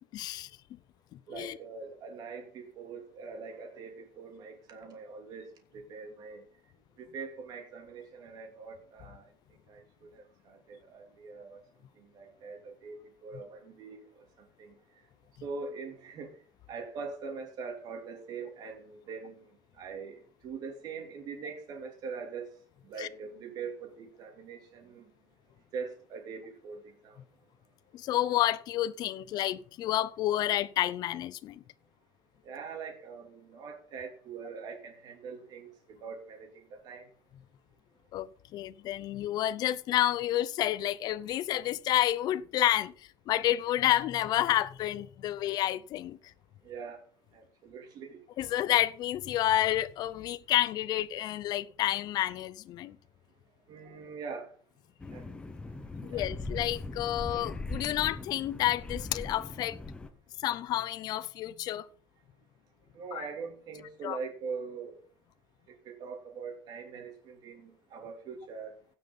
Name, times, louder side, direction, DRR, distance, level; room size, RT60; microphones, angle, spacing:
voice 1, 0.1-0.5 1.1-1.6 23.0-23.1 27.9-31.6 38.1-38.3 38.5-46.2 48.4-53.0 56.0-59.8 60.4-61.9 63.1-63.3 64.0-64.2, left 13 dB, 45° left, 0.6 m, -30 dB
voice 2, 1.3-6.4 7.0-9.3 9.7-11.6 12.0-14.0 14.4-14.8 15.4-16.3 16.7-19.5 19.8-22.5 22.8-25.1 25.7-27.2 32.4-37.1 46.6-47.0 47.3-48.2 53.7-54.5 55.1-55.3 56.1-56.3 62.9-65.0 65.8-68.8, right 5 dB, 45° right, 2.8 m, -42 dB
sound 1, 55.0-60.1, left 2 dB, 10° left, 0.8 m, -40 dB
16.5 x 6.1 x 5.4 m
cardioid pair, 170°, 9 cm